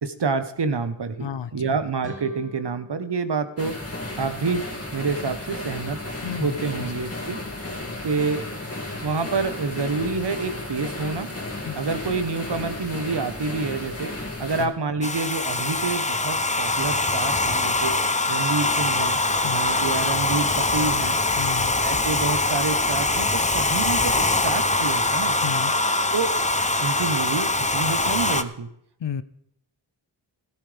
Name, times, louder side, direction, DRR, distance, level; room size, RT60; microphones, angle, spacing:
voice 1, 0.0-3.8 4.2-4.7 4.9-6.0 6.3-7.4 8.0-8.4 9.0-11.3 11.7-14.1 14.4-17.9 18.3-19.2 19.5-21.2 21.8-25.4 26.1-26.3 26.8-28.7, right 4 dB, 60° right, 9 dB, 1.2 m, -28 dB
voice 2, 1.2-1.8 6.2-6.9 11.6-11.8 14.6-14.7 19.4-19.6 21.4-21.7 25.4-25.7 29.0-29.2, left 7 dB, 65° left, 14 dB, 0.7 m, -32 dB
sound 1, 2.0-4.8, right 1 dB, 15° right, 2.8 m, -47 dB
sound 2, 3.6-14.7, left 2 dB, 30° left, 2.6 m, -34 dB
Domestic sounds home sounds, 15.0-28.4, left 2 dB, 15° left, 0.6 m, -23 dB
15.5 x 13.0 x 3.4 m, 0.73 s
cardioid pair, 55°, 45 cm